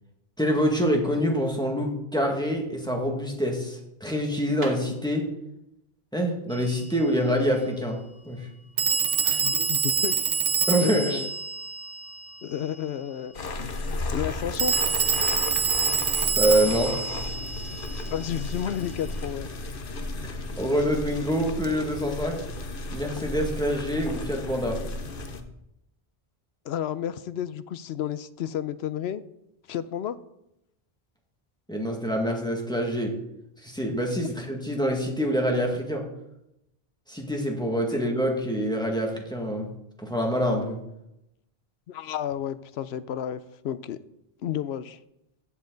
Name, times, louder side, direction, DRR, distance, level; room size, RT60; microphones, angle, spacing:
voice 1, 0.4-5.2 6.1-8.0 8.2-8.5 9.2-9.4 10.7-11.2 15.2-15.3 16.3-16.9 20.2-22.4 22.9-24.8 31.7-33.1 33.6-36.0 37.1-39.7 40.0-40.8, equal, 5° left, 0 dB, 1.8 m, -26 dB
sound 1, 3.9-8.3, right 2 dB, 80° right, 1.8 m, -45 dB
Telephone, 6.5-6.7 8.8-12.5 14.6-18.3, right 6 dB, 50° right, 0.7 m, -26 dB
voice 2, 9.4-10.1 10.8-11.3 12.4-13.7 14.1-14.7 18.1-19.5 26.6-29.2 29.7-30.2 37.9-38.0 41.9-44.0 44.4-45.0, left 10 dB, 85° left, 14 dB, 0.9 m, -31 dB
sound 2, 13.3-25.4, left 2 dB, 60° left, 1.1 m, -34 dB
15.0 x 7.5 x 3.9 m, 0.85 s
omnidirectional pair, 1.0 m